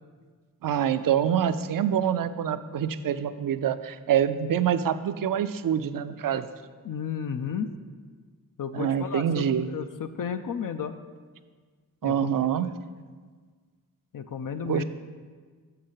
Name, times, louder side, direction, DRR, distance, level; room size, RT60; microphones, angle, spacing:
voice 1, 0.6-6.5 8.7-9.7 12.0-12.7 14.6-14.8, right 9 dB, 65° right, 12 dB, 0.5 m, -26 dB
voice 2, 6.8-7.7 8.6-11.0 12.0-12.3 14.1-14.8, left 7 dB, 65° left, 8 dB, 0.5 m, -33 dB
6.6 x 6.3 x 5.6 m, 1.5 s
wide cardioid pair, 65°, 36 cm